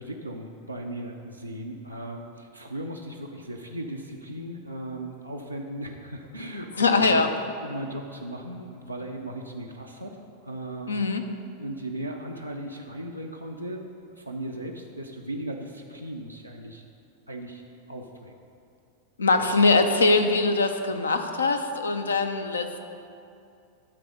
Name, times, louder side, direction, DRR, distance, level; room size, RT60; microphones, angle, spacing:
voice 1, 0.0-7.2 7.6-10.2 10.4-11.0 11.6-13.9 14.2-16.8 17.3-17.6 17.9-18.3 19.3-19.5, right 1 dB, 90° right, 0 dB, 0.6 m, -37 dB
voice 2, 6.8-7.3 10.9-11.2 19.2-22.8, left 3 dB, 75° left, 7 dB, 0.6 m, -22 dB
12.0 x 4.1 x 5.3 m, 2.6 s
figure-of-eight pair, 90°, 0 cm